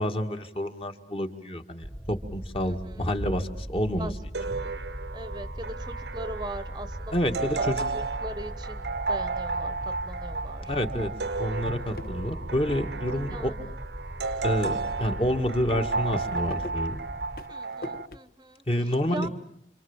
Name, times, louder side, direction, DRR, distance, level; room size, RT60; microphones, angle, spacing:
voice 1, 0.0-4.1 7.1-7.8 10.7-11.1 11.4-13.5 14.4-17.1 18.7-19.3, equal, 30° left, 5 dB, 2.0 m, -28 dB
sound 1, 1.8-17.4, equal, 5° right, 1.1 m, -39 dB
voice 2, 2.6-3.1 4.0-4.7 5.1-7.3 7.5-10.8 13.3-13.7 17.5-19.3, right 1 dB, 25° right, 12 dB, 1.0 m, -40 dB
sound 2, 4.3-18.1, right 4 dB, 80° right, 1.0 m, -33 dB
sound 3, 11.7-12.8 13.1-13.7 14.3-14.4 14.7-14.8 15.1-15.2 15.5-18.2, left 2 dB, 55° left, 1.1 m, -42 dB
28.0 x 27.5 x 7.3 m, 0.70 s
head